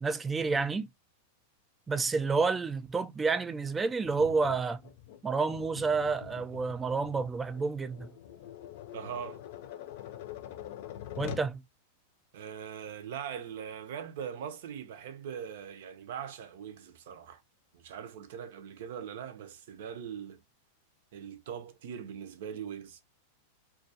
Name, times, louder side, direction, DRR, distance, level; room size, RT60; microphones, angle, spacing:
voice 1, 0.0-0.9 1.9-4.8 5.2-8.1 11.2-11.6, right 4 dB, 15° right, 0.3 m, -29 dB
Tap, 4.0-11.5, left 12 dB, 60° left, 0.5 m, -45 dB
voice 2, 8.9-9.4 12.3-17.4 17.7-20.4 21.1-23.0, right 8 dB, 70° right, 0.6 m, -41 dB
2.4 x 2.2 x 2.7 m
supercardioid pair, 135°, 0 cm